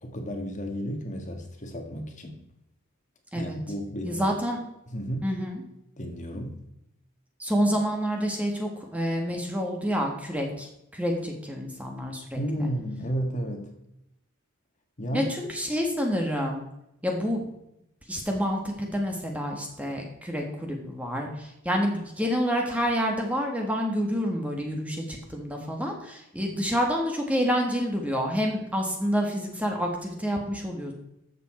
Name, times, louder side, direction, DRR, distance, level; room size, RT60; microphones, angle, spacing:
voice 1, 0.0-2.4 3.3-4.4 4.9-5.3 6.0-6.6 12.4-13.7 15.0-15.3, equal, 35° left, 4 dB, 1.6 m, -32 dB
voice 2, 4.0-4.6 5.2-5.6 7.4-12.4 15.1-16.7 17.0-17.5 18.1-30.9, equal, 5° right, 1 dB, 1.6 m, -28 dB
13.5 x 7.2 x 4.3 m, 0.83 s
head